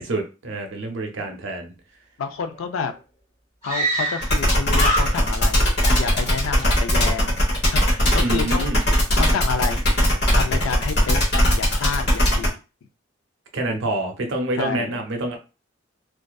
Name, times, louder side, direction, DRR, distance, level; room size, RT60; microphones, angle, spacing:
voice 1, 0.0-1.7 8.2-8.8 13.5-15.4, right 2 dB, 65° right, 4 dB, 0.6 m, -27 dB
voice 2, 2.2-2.9 3.6-5.7 6.0-7.4 7.7-8.7 9.2-9.8 10.3-12.5 14.6-15.0, left 5 dB, 80° left, 8 dB, 0.4 m, -29 dB
Screaming, 2.5-2.6 2.8-2.9 3.6-4.4 4.7-5.5 5.8-6.7, right 1 dB, 30° left, 1.2 m, -26 dB
sound 1, 4.2-12.5, equal, 55° left, 1.0 m, -19 dB
2.5 x 2.3 x 2.2 m, 0.31 s
head